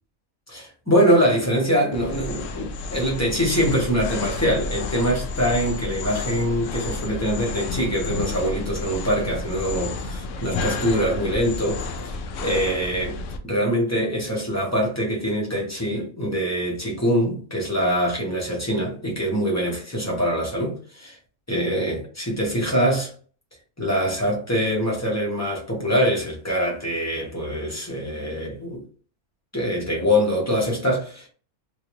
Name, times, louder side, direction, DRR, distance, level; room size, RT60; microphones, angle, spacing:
voice 1, 0.5-13.2 13.4-21.2 21.5-23.1 23.8-28.8 29.5-31.3, equal, 15° left, 0.7 m, -24 dB
sound 1, 1.9-13.4, left 3 dB, 65° left, 0.8 m, -31 dB
3.5 x 2.4 x 3.0 m
omnidirectional pair, 1.6 m